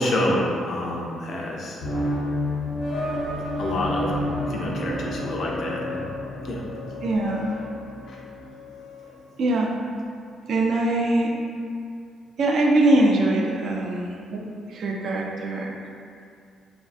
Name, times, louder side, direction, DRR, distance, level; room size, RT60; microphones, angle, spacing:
voice 1, 0.0-1.8 3.6-4.1 4.5-6.1 6.5-6.6 8.1-8.2, left 1 dB, 60° left, -2 dB, 0.4 m, -27 dB
sound 1, 1.8-9.1, left 1 dB, 75° left, 0.8 m, -30 dB
voice 2, 7.0-7.5 9.4-9.8 10.5-11.3 12.4-15.7, right 2 dB, 60° right, 0 dB, 0.3 m, -22 dB
2.6 x 2.1 x 2.4 m, 2.4 s
cardioid pair, 90°, 0 cm